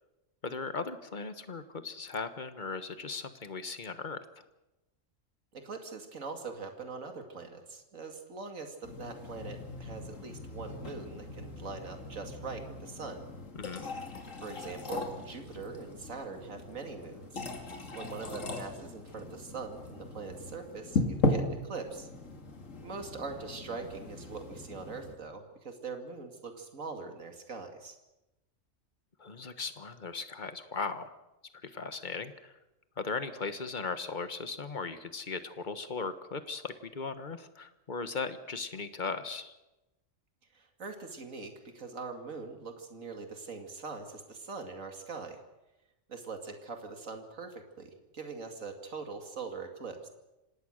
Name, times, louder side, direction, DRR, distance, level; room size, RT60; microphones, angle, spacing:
voice 1, 0.4-4.2 13.5-13.9 29.2-31.1 31.6-32.5 33.0-39.5, left 4 dB, 35° left, 10 dB, 1.4 m, -38 dB
voice 2, 5.5-13.2 14.4-17.4 17.9-22.1 22.8-28.0 40.5-45.4 46.1-50.1, right 4 dB, 75° right, 5 dB, 2.7 m, -42 dB
sound 1, 8.8-25.1, left 2 dB, 70° left, 2.5 m, -38 dB
26.5 x 18.0 x 6.5 m, 0.97 s
omnidirectional pair, 1.4 m